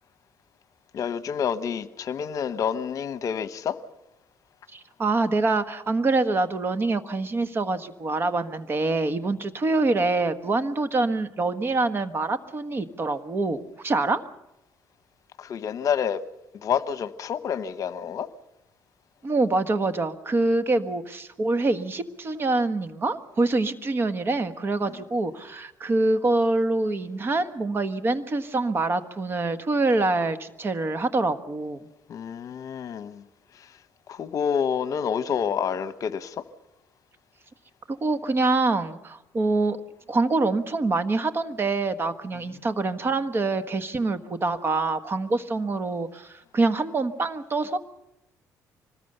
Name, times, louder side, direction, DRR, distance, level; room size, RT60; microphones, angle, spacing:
voice 1, 0.9-3.8 15.4-16.2 16.6-18.3 32.1-33.2 34.1-36.4, left 7 dB, 55° left, 1.0 m, -28 dB
voice 2, 4.7-14.2 19.2-31.8 37.9-39.8 40.1-47.8, right 3 dB, 35° right, 1.4 m, -25 dB
25.0 x 20.0 x 6.8 m
cardioid pair, 110°, 7 cm